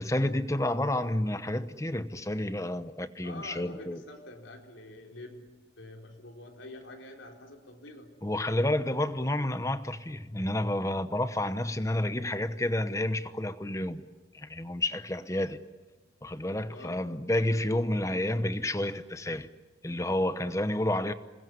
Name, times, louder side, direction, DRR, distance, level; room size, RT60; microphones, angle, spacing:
voice 1, 0.0-4.0 8.2-14.0 14.3-15.6 16.2-19.5 19.8-21.1, left 1 dB, 15° left, 1.0 m, -30 dB
voice 2, 3.2-5.5 5.8-8.1 16.7-17.1, left 2 dB, 85° left, 4.3 m, -46 dB
27.5 x 21.5 x 9.7 m
head